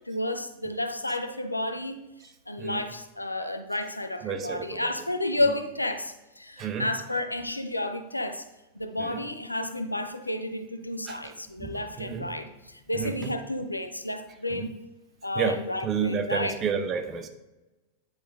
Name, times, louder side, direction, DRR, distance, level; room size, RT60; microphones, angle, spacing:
voice 1, 0.1-2.0 2.5-8.4 8.7-14.8 15.2-16.5, left 1 dB, 85° left, 8 dB, 0.5 m, -31 dB
voice 2, 4.2-4.9 6.6-6.9 9.0-9.2 11.1-12.3 12.9-13.3 14.5-14.7 15.3-17.3, right 6 dB, 30° right, 6 dB, 0.7 m, -31 dB
9.4 x 3.9 x 3.5 m, 1.1 s
figure-of-eight pair, 90°, 0 cm